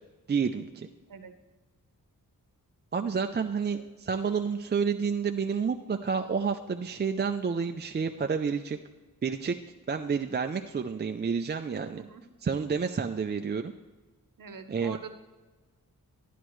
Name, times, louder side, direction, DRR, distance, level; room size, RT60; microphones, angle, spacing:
voice 1, 0.3-0.9 2.9-8.8 9.2-9.6 9.9-12.0 12.4-13.7 14.7-15.0, right 6 dB, 30° right, 5 dB, 0.4 m, -29 dB
voice 2, 14.4-15.1, right 6 dB, 65° right, 8 dB, 0.9 m, -44 dB
13.0 x 10.0 x 3.1 m, 1.3 s
wide cardioid pair, 100°, 36 cm